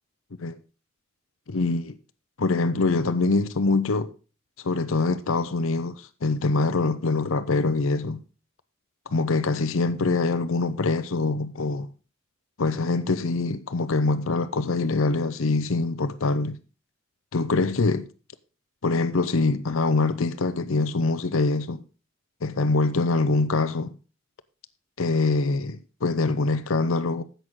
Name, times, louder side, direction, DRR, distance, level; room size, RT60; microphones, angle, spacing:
voice 1, 1.5-2.0 2.4-4.1 4.6-8.2 9.1-11.9 12.6-16.6 17.3-18.1 18.8-21.8 22.4-23.9 25.0-27.2, left 3 dB, 70° left, 0.7 m, -24 dB
11.0 x 8.1 x 3.7 m
head